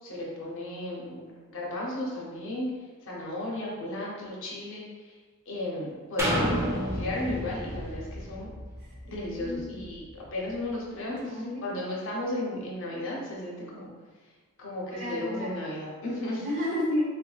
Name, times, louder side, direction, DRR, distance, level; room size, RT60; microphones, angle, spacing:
voice 1, 0.0-2.7 3.1-5.2 5.5-8.5 9.0-11.2 11.6-13.9 14.6-16.5, left 1 dB, 60° left, -4 dB, 0.8 m, -34 dB
sound 1, 6.2-10.0 10.5-10.6, equal, 10° right, 0.5 m, -31 dB
voice 2, 9.1-9.8 11.1-11.7 15.0-15.5 16.4-17.0, left 1 dB, 55° right, -6 dB, 1.1 m, -31 dB
3.8 x 2.6 x 2.3 m, 1.4 s
head